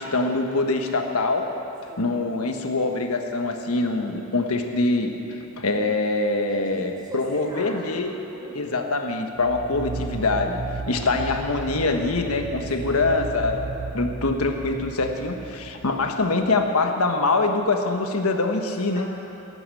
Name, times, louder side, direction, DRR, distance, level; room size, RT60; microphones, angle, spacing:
voice 1, 0.0-1.5 2.0-5.1 5.6-8.1 8.5-10.6 10.9-13.6 13.9-19.1, left 3 dB, 80° left, 4 dB, 1.3 m, -24 dB
voice 2, 6.5-8.7 12.6-13.1 18.8-19.1, right 1 dB, 20° right, -4 dB, 3.7 m, -40 dB
sound 1, 9.4-16.7, right 4 dB, 55° right, 0.6 m, -34 dB
17.0 x 9.7 x 7.7 m, 2.9 s
head